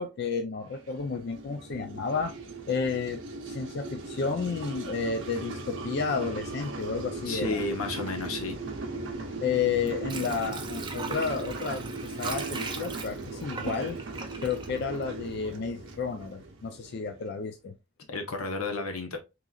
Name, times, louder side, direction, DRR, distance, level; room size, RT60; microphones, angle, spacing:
voice 1, 0.0-2.3 2.7-7.6 9.4-14.0 14.4-17.7, left 5 dB, 50° left, 0.3 m, -31 dB
sound 1, 0.7-17.4, right 2 dB, 60° right, 0.8 m, -38 dB
voice 2, 7.3-8.6 18.1-19.2, left 3 dB, 90° left, 0.9 m, -32 dB
Water / Sink (filling or washing), 9.7-15.6 15.9-16.0, right 4 dB, 20° right, 0.4 m, -39 dB
3.7 x 3.0 x 2.3 m
head